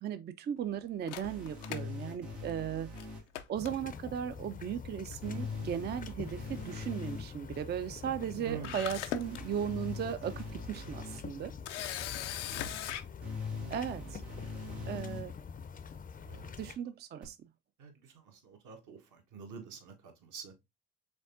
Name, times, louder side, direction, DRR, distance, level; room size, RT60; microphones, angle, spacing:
voice 1, 0.0-2.9 3.5-11.5 13.7-14.2 14.9-15.3 16.6-17.4, right 9 dB, 30° right, 0.4 m, -37 dB
Camera, 1.1-2.6 3.0-3.1 3.3-4.2 5.1-5.4 5.7-5.8 8.2-8.3 8.6-9.4 10.0-10.1 11.7-13.0, left 11 dB, 90° left, 0.5 m, -39 dB
sound 1, 1.2-3.2 5.2-7.2 9.2-11.2 13.2-15.2 17.2-17.3, left 4 dB, 85° right, 1.8 m, -42 dB
sound 2, 3.5-16.8, left 6 dB, 25° left, 0.5 m, -46 dB
voice 2, 8.4-8.9 12.4-13.0 14.7-15.1 16.2-16.7 17.8-20.5, right 6 dB, 60° right, 1.4 m, -48 dB
5.2 x 3.5 x 2.5 m
hypercardioid pair, 55°, 34 cm